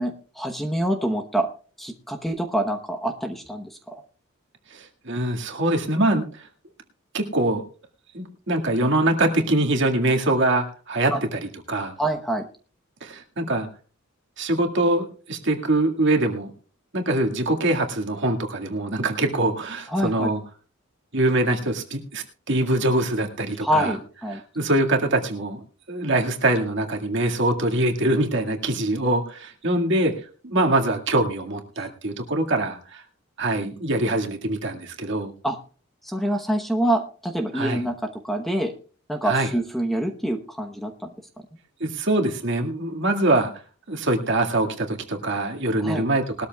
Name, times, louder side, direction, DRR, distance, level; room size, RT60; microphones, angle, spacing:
voice 1, 0.0-1.5 1.8-3.9 11.1-11.2 12.0-12.5 19.9-20.3 23.6-24.4 35.4-35.6 36.0-38.7 39.1-41.1 45.8-46.1, right 1 dB, ahead, 3 dB, 1.0 m, -26 dB
voice 2, 4.7-6.3 7.1-7.6 8.1-11.4 11.7-11.9 13.0-13.7 14.4-16.5 16.9-20.4 21.1-23.9 24.6-25.6 25.9-30.1 30.4-33.0 33.4-35.3 37.5-37.8 39.2-39.5 41.8-43.5 43.9-46.5, right 1 dB, 60° right, 2 dB, 2.0 m, -23 dB
20.0 x 13.0 x 2.3 m, 0.39 s
head